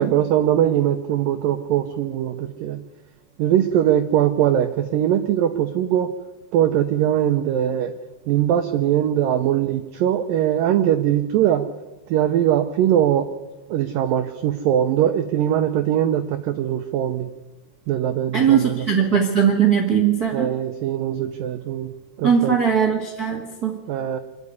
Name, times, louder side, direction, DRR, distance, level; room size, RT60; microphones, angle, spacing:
voice 1, 0.0-2.8 3.4-6.1 6.5-7.9 8.3-11.7 12.1-13.3 13.7-17.3 17.9-18.9 20.3-21.9 22.2-22.6 23.9-24.2, right 11 dB, 80° right, 8 dB, 2.1 m, -21 dB
voice 2, 18.3-20.5 22.2-23.8, right 7 dB, 50° right, 3 dB, 1.1 m, -19 dB
25.5 x 11.0 x 9.6 m, 1.1 s
omnidirectional pair, 4.9 m